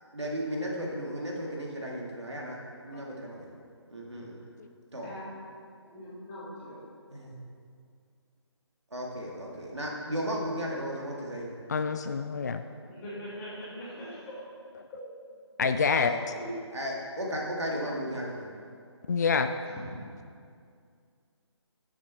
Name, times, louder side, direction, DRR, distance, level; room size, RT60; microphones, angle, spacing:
voice 1, 0.1-2.6 2.8-3.5 3.9-4.4 4.9-5.1 7.1-7.4 8.9-11.5 15.9-16.2 16.7-18.5, equal, 70° right, -2 dB, 2.4 m, -35 dB
voice 2, 5.9-6.8 12.9-14.3 15.9-16.0 16.4-16.5 17.7-17.8, equal, 15° left, -9 dB, 2.9 m, -42 dB
voice 3, 11.7-12.6 14.8-14.9 15.6-16.1 19.1-19.6, left 5 dB, 40° left, 8 dB, 0.4 m, -27 dB
13.0 x 7.4 x 4.5 m, 2.3 s
figure-of-eight pair, 150°, 15 cm